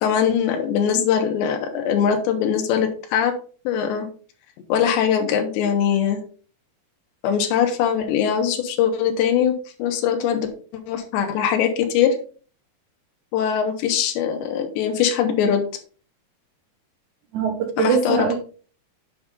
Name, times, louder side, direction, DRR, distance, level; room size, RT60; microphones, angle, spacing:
voice 1, 0.0-3.3 3.6-4.1 4.7-6.2 7.2-10.5 10.9-12.2 13.3-15.6 17.8-18.3, left 8 dB, 80° left, 4 dB, 3.4 m, -21 dB
voice 2, 17.3-18.4, right 6 dB, 75° right, 3 dB, 1.8 m, -22 dB
8.6 x 5.5 x 3.7 m, 0.40 s
omnidirectional pair, 5.0 m